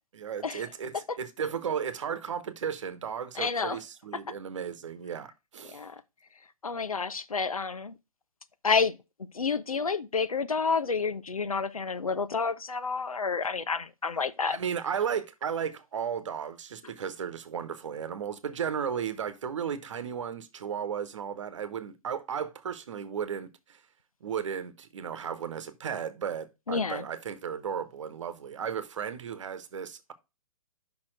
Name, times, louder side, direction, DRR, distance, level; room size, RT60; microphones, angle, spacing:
voice 1, 0.1-5.8 14.5-23.8 24.2-30.1, right 7 dB, 60° right, 1.1 m, -34 dB
voice 2, 3.4-3.8 5.7-6.0 6.6-7.9 8.6-9.0 9.3-14.6 26.7-27.1, left 5 dB, 85° left, 0.7 m, -29 dB
5.8 x 4.3 x 6.0 m
figure-of-eight pair, 125°, 18 cm